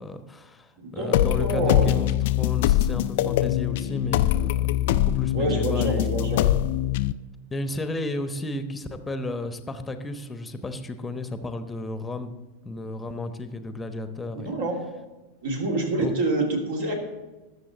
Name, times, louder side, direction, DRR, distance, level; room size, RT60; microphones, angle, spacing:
voice 1, 0.0-6.4 7.5-12.3 12.6-14.6 16.0-16.1, left 2 dB, 10° left, 9 dB, 1.0 m, -33 dB
voice 2, 0.8-1.9 5.3-6.4 14.4-14.8 15.4-17.0, right 2 dB, 55° right, 1 dB, 2.6 m, -27 dB
sound 1, 1.1-7.1, left 13 dB, 50° left, 0.4 m, -23 dB
19.0 x 7.2 x 4.0 m, 1.1 s
figure-of-eight pair, 90°, 0 cm